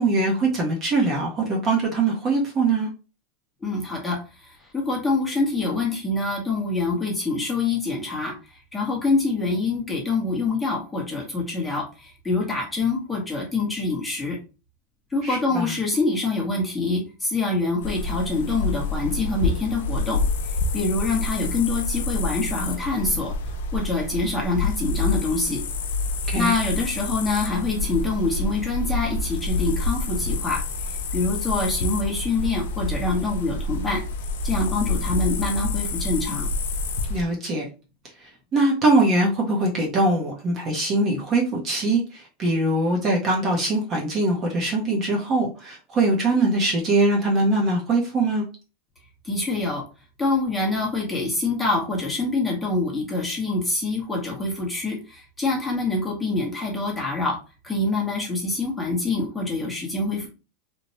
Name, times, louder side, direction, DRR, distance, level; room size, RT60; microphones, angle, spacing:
voice 1, 0.0-2.9 15.2-15.7 26.3-26.5 37.1-37.7 38.2-48.4, right 2 dB, 30° right, 0.6 m, -22 dB
voice 2, 3.6-14.4 15.1-20.2 20.7-23.3 23.7-25.6 26.3-30.6 31.1-34.0 34.4-36.5 49.2-49.8 50.2-57.4 57.6-60.3, left 3 dB, 10° left, 0.9 m, -25 dB
sound 1, 17.8-37.2, left 3 dB, 90° left, 0.5 m, -28 dB
3.0 x 2.1 x 2.7 m
supercardioid pair, 155°, 0 cm